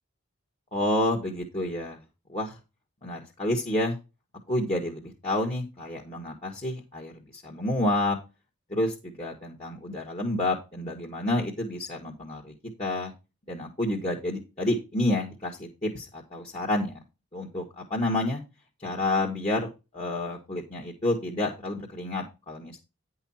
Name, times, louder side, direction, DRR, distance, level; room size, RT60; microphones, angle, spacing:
voice 1, 0.7-2.0 2.3-2.6 3.0-4.0 4.5-8.2 8.7-12.5 12.8-13.1 13.5-17.0 17.3-18.4 18.8-19.7 19.9-22.8, left 1 dB, 30° left, -3 dB, 1.7 m, -29 dB
10.0 x 5.6 x 4.3 m, 0.27 s
head